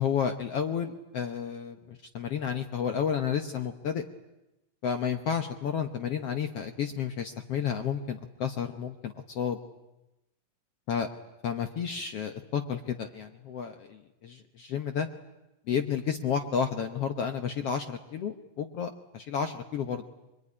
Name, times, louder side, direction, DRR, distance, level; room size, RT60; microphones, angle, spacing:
voice 1, 0.0-4.0 4.8-9.6 10.9-11.1 11.4-15.1 15.7-20.0, left 7 dB, 65° left, 7 dB, 1.5 m, -31 dB
25.5 x 22.5 x 9.8 m, 0.96 s
omnidirectional pair, 4.1 m